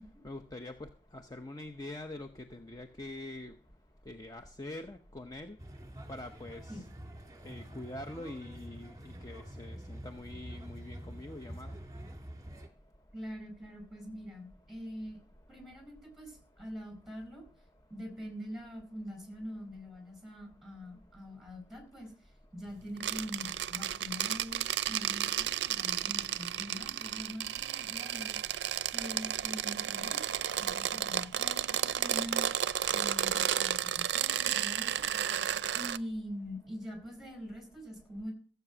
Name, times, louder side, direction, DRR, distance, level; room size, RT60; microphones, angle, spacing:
voice 1, 0.2-3.5 4.1-5.6 6.1-6.8 7.4-11.8, left 2 dB, 20° left, 6 dB, 0.7 m, -44 dB
sound 1, 5.6-12.7, right 1 dB, 20° right, 2.0 m, -46 dB
voice 2, 13.1-15.2 15.5-17.4 17.9-22.1 22.5-28.6 28.9-30.2 30.6-32.5 32.9-35.1 35.7-38.3, equal, ahead, 5 dB, 4.9 m, -44 dB
sound 2, 23.0-36.0, right 10 dB, 70° right, 0.5 m, -33 dB
15.0 x 8.0 x 6.1 m, 0.43 s
head